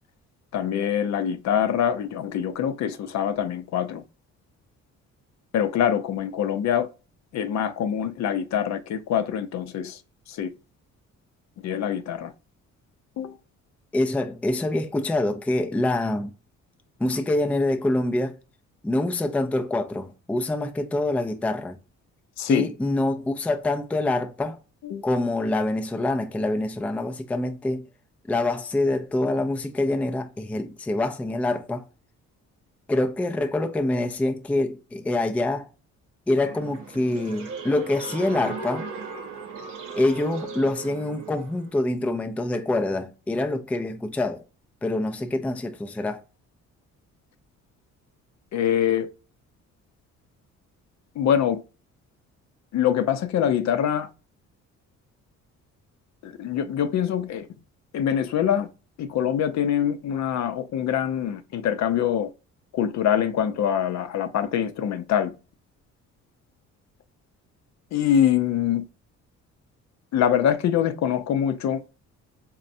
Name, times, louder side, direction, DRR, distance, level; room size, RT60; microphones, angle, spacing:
voice 1, 0.5-4.0 5.5-6.9 7.3-10.0 10.3-10.5 11.6-12.3 13.2-13.4 22.4-22.7 24.8-25.0 48.5-49.1 51.2-51.6 52.7-54.1 56.2-57.5 57.9-58.7 59.0-62.3 62.7-65.3 67.9-68.9 70.1-71.8, left 9 dB, 65° left, 0.5 m, -24 dB
voice 2, 13.9-16.3 17.0-18.4 18.8-21.8 22.5-24.6 25.0-27.8 28.3-31.8 32.9-35.7 36.3-38.9 39.9-44.4 44.8-46.2, left 2 dB, 5° left, 0.3 m, -25 dB
sound 1, 36.4-41.7, right 4 dB, 80° right, 0.8 m, -37 dB
4.1 x 2.2 x 2.6 m
cardioid pair, 90°, 30 cm